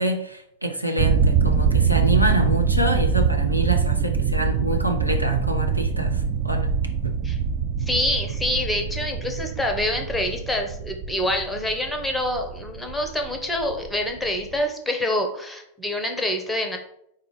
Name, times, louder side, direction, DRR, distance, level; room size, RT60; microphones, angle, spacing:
voice 1, 0.0-6.7 7.0-7.1, right 1 dB, 90° right, 3 dB, 0.6 m, -26 dB
sound 1, 1.0-14.6, right 6 dB, 40° right, 0.4 m, -24 dB
voice 2, 7.9-16.8, left 1 dB, 5° left, 4 dB, 0.7 m, -26 dB
4.4 x 2.4 x 4.7 m, 0.74 s
figure-of-eight pair, 90°, 0 cm